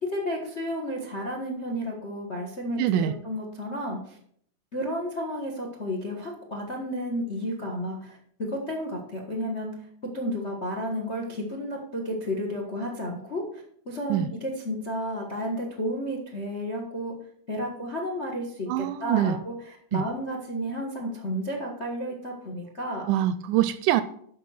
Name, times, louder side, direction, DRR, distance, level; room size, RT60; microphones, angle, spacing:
voice 1, 0.0-4.2 4.7-9.7 10.1-17.1 17.5-23.0, equal, 45° left, 1 dB, 0.8 m, -32 dB
voice 2, 2.8-3.1 14.1-14.3 18.7-19.4 19.9-20.0 23.1-24.0, right 12 dB, 80° right, 13 dB, 1.9 m, -24 dB
10.5 x 6.2 x 6.4 m, 0.65 s
omnidirectional pair, 3.9 m